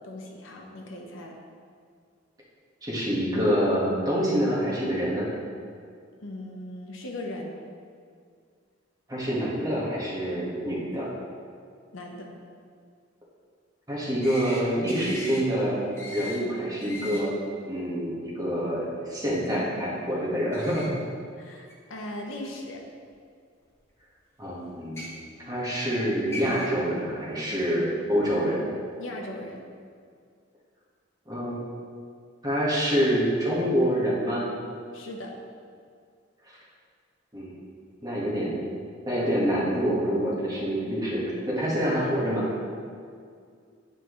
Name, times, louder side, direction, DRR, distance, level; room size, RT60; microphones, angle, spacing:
voice 1, 0.0-1.4 6.2-7.6 11.9-12.3 21.4-22.8 29.0-29.6 34.9-35.3, left 1 dB, 85° left, 1 dB, 0.9 m, -38 dB
voice 2, 2.8-5.3 9.1-11.1 13.9-17.3 17.6-21.0 24.4-25.0 25.5-28.6 31.2-31.6 32.4-34.5 36.4-36.6 37.3-37.5 38.0-38.6 39.1-42.5, equal, 20° right, -7 dB, 1.5 m, -26 dB
sound 1, 14.2-14.6 14.9-15.4 16.0-16.4 16.8-17.2 20.5-20.9 21.7-21.8 23.0-23.1 24.8-25.1 26.0-26.1 26.3-26.7, left 1 dB, 15° left, 1.0 m, -38 dB
9.6 x 4.7 x 3.1 m, 2.2 s
head